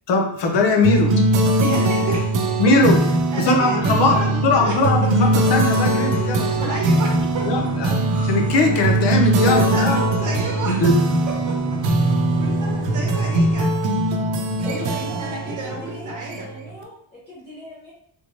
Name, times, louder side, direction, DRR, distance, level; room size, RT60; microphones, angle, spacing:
voice 1, 0.1-1.2 2.6-3.0 3.3-4.2 4.4-6.8 7.5-10.0 10.7-11.0, left 3 dB, 65° left, 0.7 m, -20 dB
sound 1, 0.8-16.7, right 2 dB, 70° right, 0.6 m, -21 dB
voice 2, 1.6-2.7 3.0-5.3 6.4-7.7 9.4-10.8 11.3-11.8 12.4-13.7 14.7-16.5, right 2 dB, 40° right, 0.9 m, -30 dB
sound 2, 4.6-13.5, left 4 dB, 30° left, 1.1 m, -34 dB
voice 3, 14.6-17.9, left 1 dB, 15° left, 0.7 m, -38 dB
3.5 x 2.9 x 2.8 m
wide cardioid pair, 175°, 46 cm